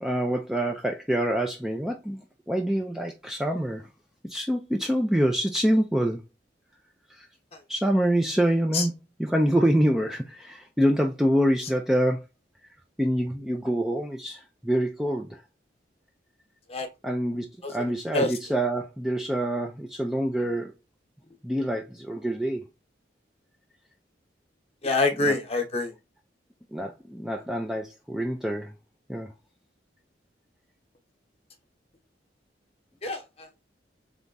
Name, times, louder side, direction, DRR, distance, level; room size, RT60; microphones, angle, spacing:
voice 1, 0.0-2.2 2.5-3.9 4.2-6.2 7.2-7.3 7.7-8.9 9.2-12.2 13.0-15.4 17.0-20.7 21.4-22.6 25.2-25.3 26.7-28.7 29.1-29.3, equal, 5° right, 0.4 m, -26 dB
voice 2, 24.8-25.9 33.0-33.5, left 2 dB, 35° left, 1.1 m, -26 dB
3.6 x 3.5 x 4.0 m
head